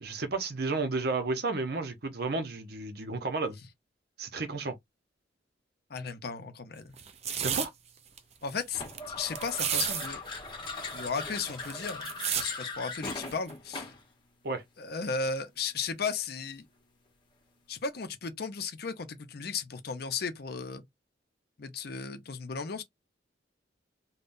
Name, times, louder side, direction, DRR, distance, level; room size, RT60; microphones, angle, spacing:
voice 1, 0.0-3.6 4.2-4.7 7.4-7.7 14.4-14.6, right 3 dB, 55° right, 0.8 m, -32 dB
voice 2, 5.9-6.9 8.4-10.2 10.9-12.1 12.4-13.9 14.8-16.6 17.7-20.8 21.6-22.8, left 5 dB, 55° left, 0.6 m, -35 dB
sound 1, 7.0-7.7 8.2-8.3 8.5-9.0 9.4-10.1 10.4-10.5 10.7-12.5 13.3-13.5, right 8 dB, 35° right, 0.4 m, -32 dB
sound 2, 8.7-14.1, left 3 dB, 25° left, 1.0 m, -39 dB
3.5 x 2.2 x 2.6 m
head